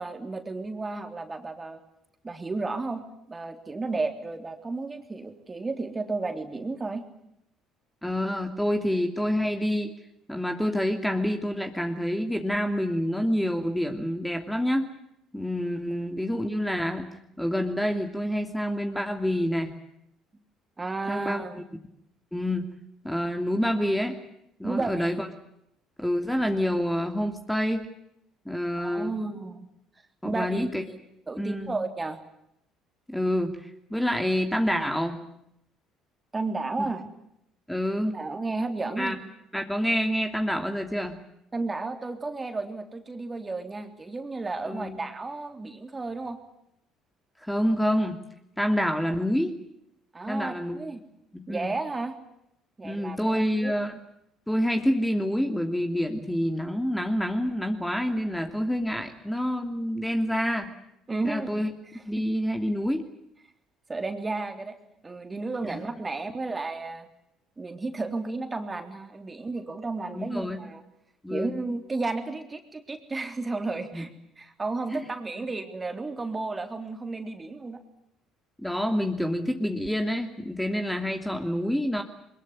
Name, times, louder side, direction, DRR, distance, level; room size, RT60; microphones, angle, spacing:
voice 1, 0.0-1.8 2.2-7.0 20.8-21.6 24.6-25.2 28.8-29.7 30.2-31.0 31.3-32.2 36.3-37.0 38.0-39.2 41.5-46.4 50.1-51.0 51.5-52.2 52.8-53.7 61.1-61.7 61.9-62.0 63.9-64.7 65.0-67.1 67.6-70.8 71.3-74.1 74.4-77.8, right 3 dB, 25° right, 6 dB, 3.5 m, -33 dB
voice 2, 8.0-9.9 10.3-14.9 15.3-17.0 17.4-19.7 21.1-21.4 22.3-22.7 23.0-24.2 24.6-25.3 26.0-27.9 28.4-29.2 30.2-30.8 31.4-31.8 33.1-35.2 36.8-36.9 37.7-38.1 39.0-39.2 39.5-41.2 44.7-45.0 47.4-48.2 48.6-49.6 50.3-50.8 51.3-51.7 52.8-54.0 54.5-60.7 61.2-61.7 62.0-63.1 65.6-65.8 70.1-70.6 71.2-71.5 73.9-74.0 74.9-75.0 75.4-75.5 78.6-82.0, equal, 5° left, 5 dB, 2.8 m, -27 dB
22.5 x 21.5 x 9.8 m, 0.79 s
hypercardioid pair, 55°, 0 cm